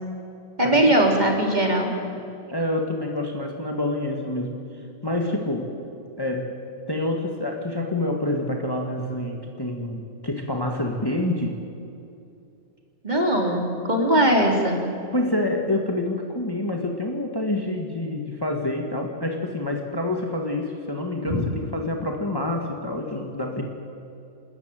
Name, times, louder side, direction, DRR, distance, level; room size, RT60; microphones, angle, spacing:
voice 1, 0.6-1.9 13.0-14.8 21.3-21.5, right 1 dB, 30° right, 1 dB, 3.5 m, -20 dB
voice 2, 2.5-4.6 5.0-5.7 6.2-6.5 6.9-11.6 15.1-23.6, left 1 dB, 15° left, 2 dB, 1.7 m, -27 dB
28.0 x 13.5 x 9.2 m, 2.7 s
omnidirectional pair, 1.4 m